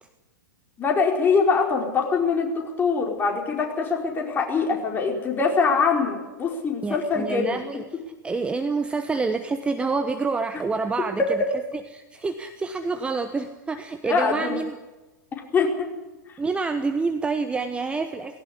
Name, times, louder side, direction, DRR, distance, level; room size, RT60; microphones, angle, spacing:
voice 1, 0.8-7.6 11.2-11.3 14.0-14.6 15.5-15.9 16.3-16.4, left 5 dB, 20° left, 1 dB, 4.7 m, -23 dB
voice 2, 6.8-7.8 8.2-11.2 11.9-14.7 16.4-18.4, right 4 dB, 10° right, 8 dB, 1.1 m, -27 dB
19.0 x 17.5 x 8.6 m, 1.1 s
figure-of-eight pair, 100°, 10 cm